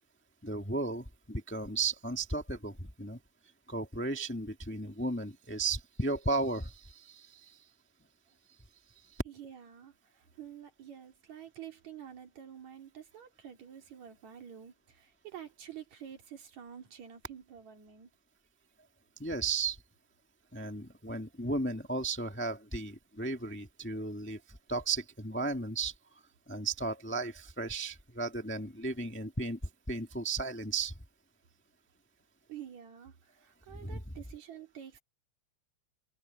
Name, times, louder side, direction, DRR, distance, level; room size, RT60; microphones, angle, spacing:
voice 1, 0.4-3.2 3.7-7.6 9.0-9.1 19.2-19.8 20.5-25.9 26.5-29.6 29.9-30.9 33.7-34.1, right 3 dB, 5° left, 1.0 m, -35 dB
voice 2, 9.3-9.9 10.4-18.1 32.5-35.0, right 9 dB, 70° right, 3.9 m, -48 dB
omnidirectional pair, 3.3 m